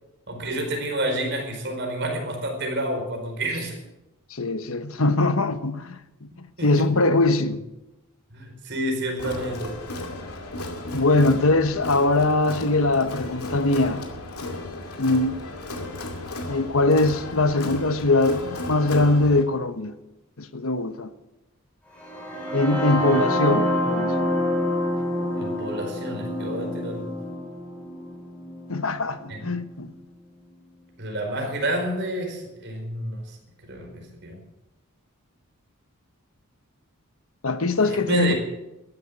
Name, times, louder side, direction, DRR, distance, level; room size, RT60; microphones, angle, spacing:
voice 1, 0.3-3.8 6.6-6.8 8.3-9.8 22.9-23.1 25.4-27.1 29.3-29.4 31.0-33.4 33.6-34.4 37.8-38.3, right 1 dB, 50° right, 4.6 m, -29 dB
voice 2, 4.3-6.3 6.6-7.6 10.9-14.0 15.0-15.4 16.5-19.9 20.4-21.1 22.5-24.3 28.7-29.9 37.4-38.3, left 2 dB, 70° left, 1.1 m, -22 dB
Crowd, 9.2-19.4, left 2 dB, 90° left, 2.4 m, -34 dB
sound 1, 22.0-29.9, equal, 5° left, 5.0 m, -27 dB
14.0 x 11.0 x 8.7 m
head